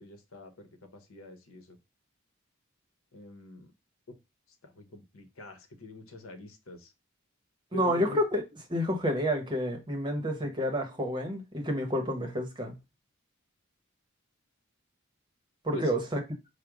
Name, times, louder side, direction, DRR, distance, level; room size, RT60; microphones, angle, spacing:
voice 1, 0.0-1.8 3.1-3.7 4.1-4.2 4.6-6.9 7.7-8.2 15.7-15.9, right 1 dB, 80° left, 0.8 m, -44 dB
voice 2, 7.7-8.4 8.7-12.7 15.6-16.2, equal, 20° right, 0.9 m, -29 dB
4.9 x 2.1 x 4.7 m
head